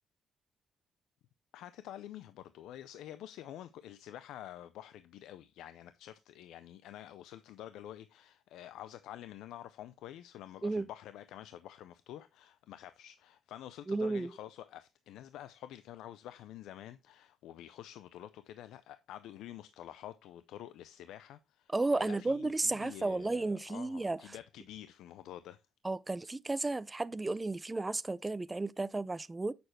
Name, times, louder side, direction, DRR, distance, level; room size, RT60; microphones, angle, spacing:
voice 1, 1.5-25.6, left 12 dB, 85° left, 0.5 m, -48 dB
voice 2, 13.9-14.3 21.7-24.2 25.8-29.5, right 2 dB, 20° right, 0.5 m, -33 dB
8.7 x 6.9 x 3.2 m
cardioid pair, 90°, 0 cm